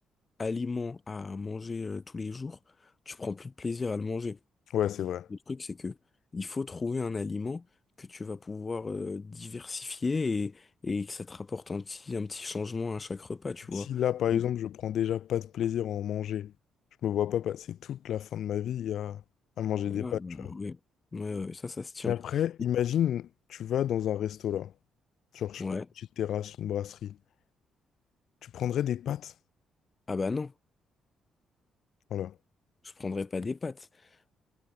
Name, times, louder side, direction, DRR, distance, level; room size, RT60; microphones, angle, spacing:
voice 1, 0.4-2.6 3.1-4.4 5.3-6.0 6.3-7.7 8.0-14.0 14.3-14.4 19.8-20.8 21.1-22.1 25.6-25.9 30.1-30.5 32.8-33.9, left 4 dB, 30° left, 4.1 m, -34 dB
voice 2, 4.7-5.3 13.7-16.5 17.0-19.2 19.6-20.2 22.1-24.7 25.3-25.6 26.2-27.2 28.4-29.3 32.1-32.3, left 10 dB, 70° left, 0.8 m, -30 dB
cardioid pair, 90°, 0 cm